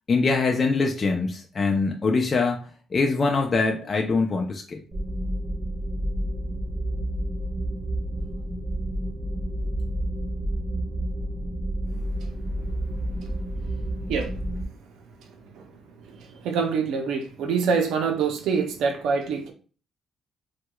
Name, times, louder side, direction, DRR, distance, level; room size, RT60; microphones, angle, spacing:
voice 1, 0.1-2.6 2.9-4.8, left 4 dB, 40° left, 0.5 m, -23 dB
sound 1, 4.9-14.6, right 1 dB, 30° right, 0.9 m, -30 dB
voice 2, 16.2-19.5, right 5 dB, 85° right, 0.5 m, -25 dB
4.6 x 2.2 x 2.2 m
cardioid pair, 90°, 0 cm